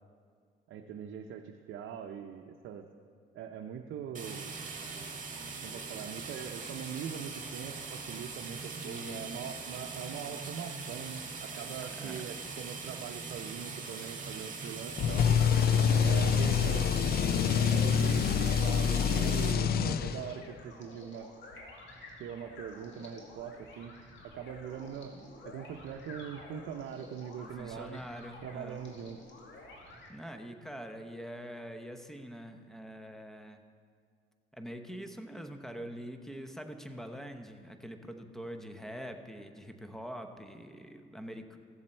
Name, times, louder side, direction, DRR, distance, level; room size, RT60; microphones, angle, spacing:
voice 1, 0.7-2.9 3.3-4.5 5.6-15.3 16.0-16.9 17.4-21.3 22.2-23.9 24.3-25.1 25.4-28.0 28.4-29.2, right 8 dB, 80° right, 3 dB, 0.6 m, -42 dB
sound 1, 4.1-19.5, right 4 dB, 40° right, 1.6 m, -41 dB
voice 2, 8.6-9.2 12.0-12.2 27.6-28.8 30.1-33.6 34.5-41.6, equal, ahead, 6 dB, 0.8 m, -44 dB
sound 2, 15.0-20.5, left 7 dB, 50° left, 0.4 m, -26 dB
sound 3, 15.1-30.1, left 2 dB, 70° left, 1.8 m, -51 dB
15.0 x 7.3 x 4.4 m, 2.2 s
cardioid pair, 90°, 20 cm